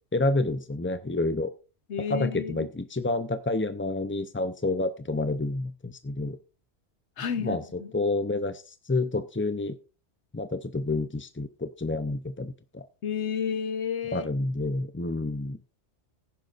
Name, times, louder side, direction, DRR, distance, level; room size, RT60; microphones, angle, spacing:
voice 1, 0.1-1.5 2.1-6.4 7.4-9.8 10.3-12.9 14.1-15.6, left 2 dB, 20° left, 0.3 m, -29 dB
voice 2, 1.9-2.7 7.2-7.9 13.0-14.3, left 7 dB, 75° left, 1.2 m, -31 dB
16.0 x 10.5 x 2.5 m
omnidirectional pair, 1.2 m